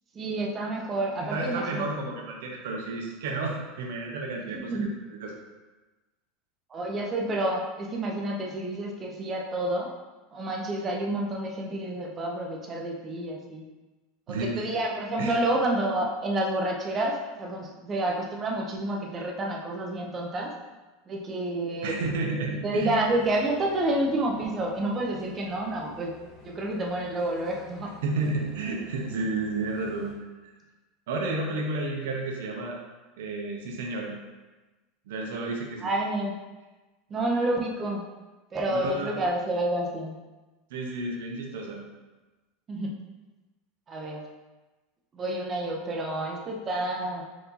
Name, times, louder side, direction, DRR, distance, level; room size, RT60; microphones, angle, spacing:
voice 1, 0.1-1.8 4.5-4.9 6.7-9.9 10.3-13.6 14.3-20.5 21.1-22.0 22.6-26.1 26.4-27.9 35.8-36.4 37.1-38.0 38.5-40.1 42.7-42.9 43.9-44.2 45.1-47.2, right 1 dB, 25° right, 0 dB, 0.7 m, -29 dB
voice 2, 1.2-4.9 5.2-5.4 14.3-14.7 15.2-15.3 21.8-22.9 28.0-30.1 30.4-30.5 31.1-32.8 33.2-34.1 35.1-35.9 38.7-39.1 40.7-41.8, right 3 dB, 80° right, 0 dB, 0.7 m, -31 dB
sound 1, 23.0-30.1, left 4 dB, 40° left, 1.4 m, -50 dB
4.6 x 2.7 x 3.9 m, 1.2 s
supercardioid pair, 135°, 0 cm